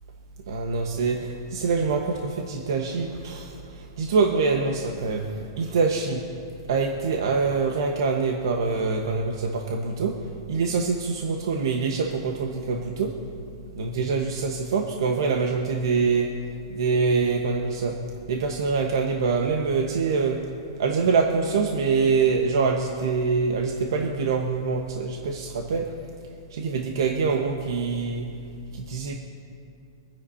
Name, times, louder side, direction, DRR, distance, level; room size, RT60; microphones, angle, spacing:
voice 1, 0.5-6.2 6.7-10.2 10.5-13.2 13.7-18.0 18.3-20.4 20.8-25.9 26.5-28.3 28.7-29.1, right 4 dB, 75° right, 1 dB, 1.4 m, -25 dB
26.0 x 10.5 x 2.8 m, 2.5 s
hypercardioid pair, 145°, 2 cm